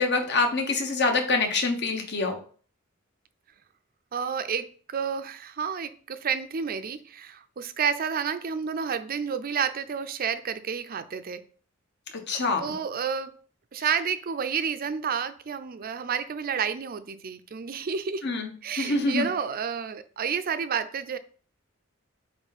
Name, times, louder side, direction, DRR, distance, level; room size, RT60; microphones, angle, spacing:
voice 1, 0.0-2.4 12.3-12.6 18.2-18.5 18.8-19.3, left 3 dB, 55° left, 1.2 m, -25 dB
voice 2, 4.1-11.4 12.6-13.3 13.7-18.3 18.6-21.2, right 6 dB, 45° right, 0.5 m, -30 dB
8.1 x 3.2 x 4.1 m
head